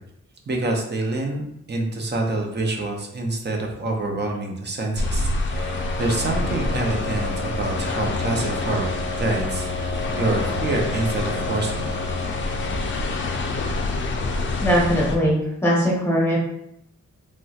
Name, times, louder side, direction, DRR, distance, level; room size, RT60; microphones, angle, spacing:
voice 1, 0.5-1.4 1.7-8.9 9.2-9.7 10.1-11.9, right 2 dB, 35° right, 1 dB, 0.5 m, -26 dB
sound 1, 5.0-15.2, left 3 dB, 40° left, 0.4 m, -27 dB
sound 2, 5.5-14.4, left 1 dB, 80° right, 1.4 m, -33 dB
voice 2, 14.6-15.4 15.6-16.4, equal, 10° left, -4 dB, 0.9 m, -20 dB
3.1 x 2.9 x 2.3 m, 0.75 s
wide cardioid pair, 140°, 29 cm